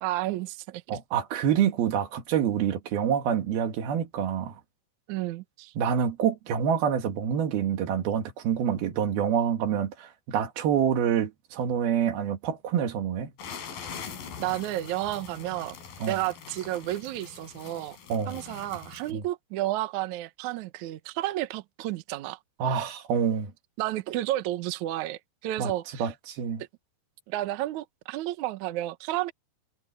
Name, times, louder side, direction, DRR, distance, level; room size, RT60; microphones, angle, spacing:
voice 1, 0.0-0.8 5.1-5.7 14.4-15.8 16.1-18.0 18.3-22.4 23.8-26.1 27.3-29.3, right 15 dB, 85° right, 1.7 m, -31 dB
voice 2, 0.9-4.6 5.8-13.3 16.0-16.2 18.1-18.4 19.1-19.2 22.6-23.5 25.6-25.7 26.0-26.6, right 8 dB, 65° right, 3.6 m, -27 dB
sound 1, 13.4-19.1, left 7 dB, 60° left, 4.9 m, -43 dB
omnidirectional pair, 4.9 m